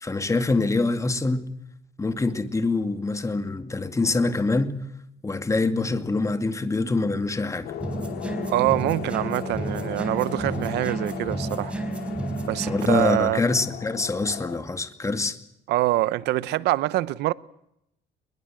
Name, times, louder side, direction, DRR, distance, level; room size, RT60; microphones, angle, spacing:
voice 1, 0.0-1.5 2.0-4.8 5.2-7.8 12.7-15.4, left 3 dB, 20° left, 2.3 m, -25 dB
sound 1, 7.6-14.6, left 9 dB, 75° left, 3.2 m, -37 dB
sound 2, 7.8-13.0, right 2 dB, 5° right, 4.6 m, -31 dB
voice 2, 8.4-11.7 12.5-13.4 15.7-17.3, right 16 dB, 80° right, 0.9 m, -25 dB
23.0 x 22.0 x 7.7 m
cardioid pair, 110°, 17 cm